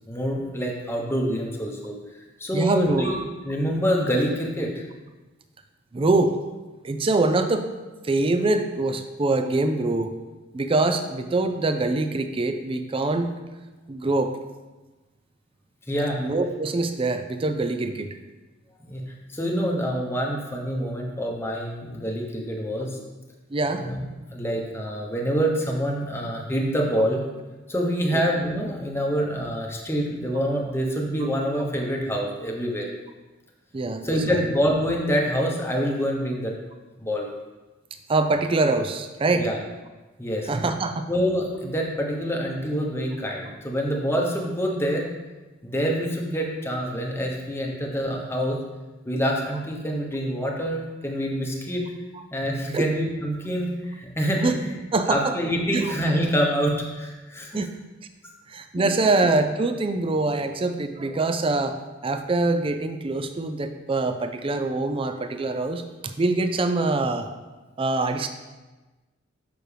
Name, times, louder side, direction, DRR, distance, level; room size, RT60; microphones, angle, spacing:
voice 1, 0.1-1.9 2.4-3.2 3.4-4.8 15.9-16.2 18.9-23.0 23.8-24.0 24.3-27.2 27.7-32.9 34.0-36.5 37.0-37.3 39.3-39.6 40.2-40.5 41.1-45.1 45.6-48.6 49.1-51.9 52.3-54.7 55.1-57.6 58.8-58.9, equal, 15° left, 0 dB, 0.9 m, -26 dB
voice 2, 2.5-3.2 5.9-6.4 6.8-7.7 8.0-10.1 10.5-13.3 13.9-14.4 16.2-18.2 23.5-23.8 28.1-28.2 33.7-34.5 38.1-39.5 40.5-41.1 52.7-52.9 54.4-54.6 54.9-55.3 55.7-55.9 57.5-57.7 58.5-67.3 67.8-68.3, right 2 dB, 30° right, 8 dB, 0.4 m, -24 dB
6.8 x 6.1 x 3.4 m, 1.2 s
head